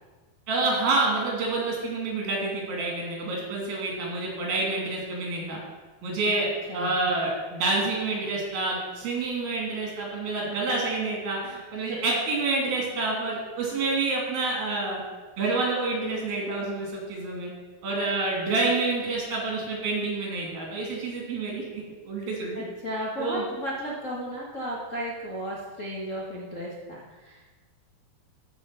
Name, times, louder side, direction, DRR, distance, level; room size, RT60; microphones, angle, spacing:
voice 1, 0.5-5.6 6.0-6.5 6.7-15.0 15.4-17.5 17.8-22.6 23.2-23.4, right 3 dB, 80° right, -2 dB, 4.7 m, -28 dB
voice 2, 22.6-27.4, equal, 55° left, -4 dB, 0.8 m, -34 dB
14.0 x 5.6 x 5.8 m, 1.3 s
omnidirectional pair, 4.2 m